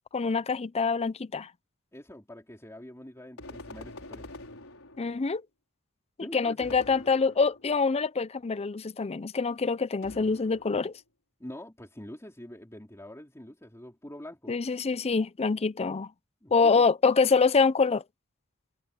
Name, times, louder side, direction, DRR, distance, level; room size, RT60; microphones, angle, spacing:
voice 1, 0.1-1.5 5.0-5.4 6.3-10.9 14.5-16.1 16.5-18.0, left 4 dB, 30° left, 0.5 m, -25 dB
voice 2, 1.9-4.3 6.2-6.7 11.4-14.9 16.4-16.8, left 1 dB, 15° left, 3.6 m, -45 dB
sound 1, 3.4-5.3 6.6-7.8 10.0-11.0, left 2 dB, 70° left, 6.0 m, -46 dB
head